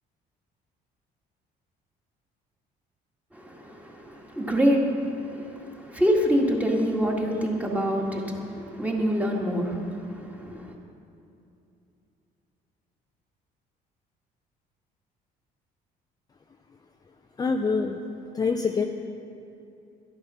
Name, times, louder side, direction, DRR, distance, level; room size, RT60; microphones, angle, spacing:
voice 1, 3.3-10.7, equal, 10° right, 0 dB, 1.9 m, -26 dB
voice 2, 17.4-18.0 18.3-18.8, left 4 dB, 20° left, 4 dB, 0.6 m, -25 dB
13.0 x 10.5 x 5.6 m, 2.7 s
cardioid pair, 110°, 17 cm